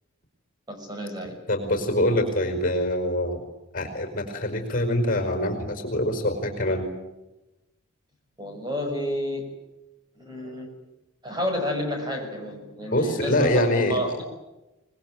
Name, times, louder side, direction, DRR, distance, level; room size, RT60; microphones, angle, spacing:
voice 1, 0.7-1.4 8.4-9.5 10.2-10.7 11.2-14.2, equal, 20° right, 3 dB, 6.1 m, -30 dB
voice 2, 1.5-3.4 3.7-6.9 12.9-14.2, left 1 dB, 40° left, 6 dB, 5.0 m, -24 dB
25.5 x 21.5 x 9.2 m, 0.99 s
head